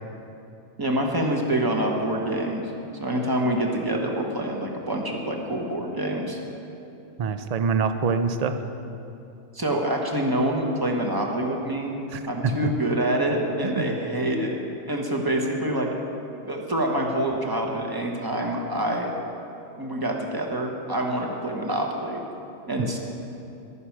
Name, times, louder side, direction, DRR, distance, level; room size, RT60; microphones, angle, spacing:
voice 1, 0.8-2.7 3.0-6.4 9.5-12.0 12.3-14.6 14.9-15.9 16.4-19.1 19.7-22.2 22.7-23.0, right 1 dB, 20° right, 1 dB, 1.2 m, -26 dB
voice 2, 7.2-8.6 12.1-12.5 13.6-13.8, right 5 dB, 65° right, 9 dB, 0.4 m, -25 dB
12.0 x 9.6 x 5.9 m, 2.8 s
omnidirectional pair, 1.4 m